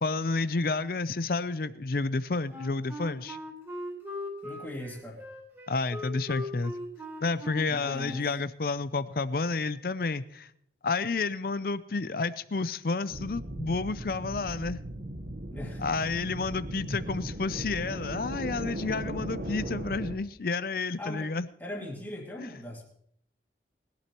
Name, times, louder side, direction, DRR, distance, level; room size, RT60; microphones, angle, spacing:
voice 1, 0.0-3.4 5.7-6.7 7.2-10.5 10.8-14.8 15.8-21.5 22.4-22.5, left 3 dB, 50° left, 15 dB, 0.5 m, -30 dB
Wind instrument woodwind instrument, 2.5-8.4, left 1 dB, 15° right, 3.6 m, -40 dB
voice 2, 4.4-5.2 7.7-8.3 15.5-15.8 21.0-21.3 21.6-22.8, left 1 dB, 10° left, -2 dB, 2.5 m, -40 dB
sound 1, 13.1-20.2, right 1 dB, 55° right, 1.1 m, -37 dB
20.5 x 11.5 x 3.0 m, 0.69 s
head